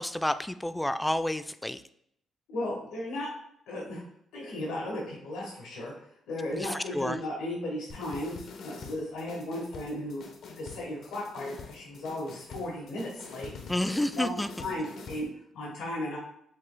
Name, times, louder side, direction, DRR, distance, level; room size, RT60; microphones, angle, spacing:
voice 1, 0.0-1.8 6.5-7.2 13.7-14.5, left 1 dB, 10° left, 12 dB, 0.3 m, -30 dB
voice 2, 2.5-3.3 3.7-4.0 4.3-5.9 6.3-8.3 8.6-10.2 10.5-13.5 13.9-15.2 15.5-16.2, left 1 dB, 85° left, -3 dB, 1.2 m, -35 dB
sound 1, 7.9-15.3, left 4 dB, 65° left, 0.7 m, -46 dB
7.1 x 3.0 x 2.2 m, 0.70 s
cardioid pair, 90°, 0 cm